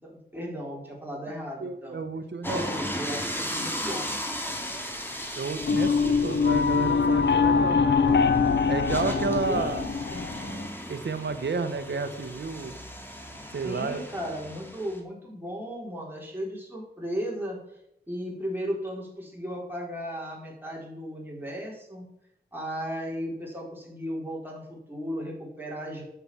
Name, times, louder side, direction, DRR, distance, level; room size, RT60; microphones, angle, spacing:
voice 1, 0.0-2.0 2.4-4.1 9.1-10.2 13.5-17.6 18.1-22.1 22.5-26.0, equal, 10° right, -3 dB, 4.7 m, -35 dB
voice 2, 1.6-3.0 5.4-8.2 8.7-9.8 10.9-12.7 13.5-14.0, right 4 dB, 80° right, 10 dB, 1.1 m, -31 dB
sound 1, 2.4-15.0, equal, 10° left, 2.6 m, -37 dB
sound 2, 5.6-10.7, left 5 dB, 90° left, 0.7 m, -23 dB
9.4 x 6.9 x 5.8 m, 0.79 s
cardioid pair, 45°, 18 cm